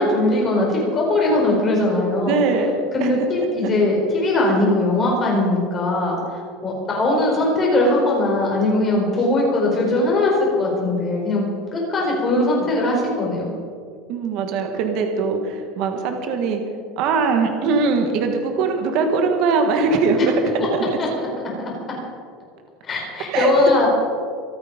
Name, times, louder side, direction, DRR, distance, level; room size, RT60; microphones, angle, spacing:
voice 1, 0.0-2.4 2.9-11.4 11.7-13.5 20.1-20.2 21.2-21.3 21.6-21.7 22.8-23.9, left 2 dB, 20° left, -2 dB, 4.9 m, -20 dB
voice 2, 2.3-2.7 3.0-3.1 14.1-16.6 17.0-20.8 23.3-23.5, right 4 dB, 45° right, 4 dB, 1.7 m, -21 dB
25.0 x 9.1 x 5.2 m, 2.1 s
cardioid pair, 175°, 0 cm